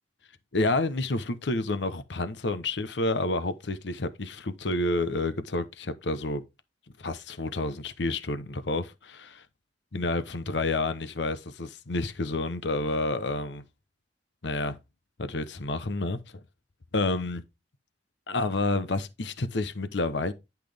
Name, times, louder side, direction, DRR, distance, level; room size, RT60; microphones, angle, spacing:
voice 1, 0.5-6.4 7.0-8.9 9.9-13.6 14.4-14.8 15.2-16.2 16.9-17.4 18.3-20.3, left 2 dB, 85° left, 0.9 m, -29 dB
10.5 x 5.8 x 3.4 m
head